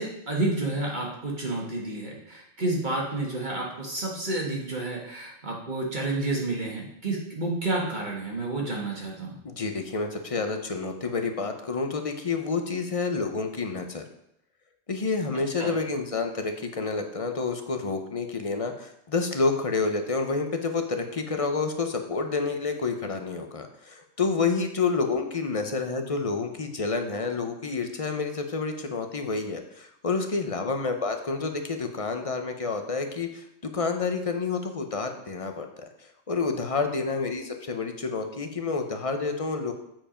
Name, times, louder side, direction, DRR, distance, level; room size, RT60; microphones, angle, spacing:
voice 1, 0.0-9.4 15.6-15.7, right 2 dB, 45° right, -2 dB, 1.5 m, -30 dB
voice 2, 9.4-14.0 14.9-39.7, left 4 dB, 35° left, 6 dB, 0.8 m, -29 dB
7.6 x 4.8 x 5.0 m, 0.79 s
omnidirectional pair, 1.2 m